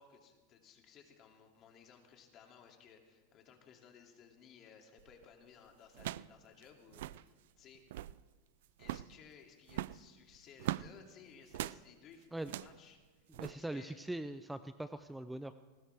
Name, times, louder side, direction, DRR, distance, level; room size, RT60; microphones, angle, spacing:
voice 1, 0.0-7.8 8.8-14.0, left 7 dB, 35° left, 2 dB, 2.6 m, -59 dB
sound 1, 5.0-5.2 5.9-6.4 6.6-6.7 6.9-7.2 7.7-8.2 8.8-9.2 9.7-10.9 11.5-11.8 12.4-12.8 13.3-13.5, right 14 dB, 70° right, 0.4 m, -41 dB
voice 2, 13.4-15.6, right 1 dB, 5° right, 11 dB, 0.5 m, -42 dB
19.5 x 19.0 x 3.5 m, 1.3 s
supercardioid pair, 135°, 0 cm